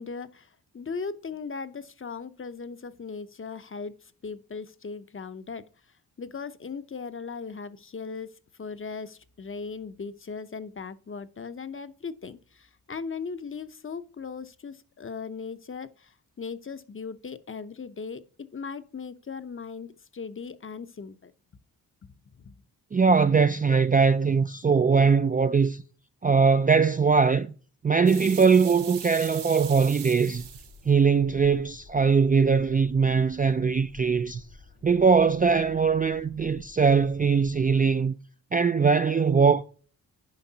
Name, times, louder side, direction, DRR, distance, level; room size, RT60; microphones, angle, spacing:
voice 1, 0.0-5.7 6.2-8.3 8.6-18.2 18.5-21.3 22.0-22.5, left 5 dB, 30° left, 0.7 m, -38 dB
voice 2, 22.9-25.8 26.2-27.5 27.8-30.5 30.9-34.4 34.8-38.1 38.5-39.6, right 5 dB, 20° right, 0.3 m, -21 dB
sound 1, 28.1-30.8, right 9 dB, 85° right, 1.0 m, -40 dB
sound 2, 30.3-37.8, left 2 dB, 90° left, 3.5 m, -51 dB
10.5 x 5.2 x 2.8 m
cardioid pair, 50°, 41 cm